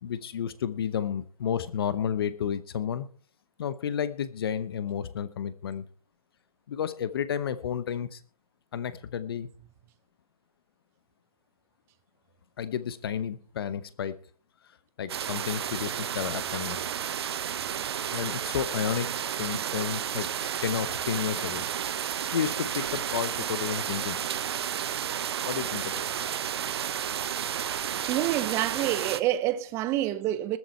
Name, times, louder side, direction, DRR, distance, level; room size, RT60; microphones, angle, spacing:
voice 1, 0.0-3.1 3.6-5.8 6.7-8.2 8.7-9.5 12.6-14.2 15.0-16.8 18.1-21.6 22.3-24.2 25.5-26.0, left 8 dB, 40° left, 0.9 m, -31 dB
sound 1, 15.1-29.2, right 9 dB, 40° right, 1.0 m, -32 dB
voice 2, 28.1-30.6, right 14 dB, 15° right, 0.7 m, -27 dB
20.5 x 7.7 x 4.4 m
figure-of-eight pair, 140°, 19 cm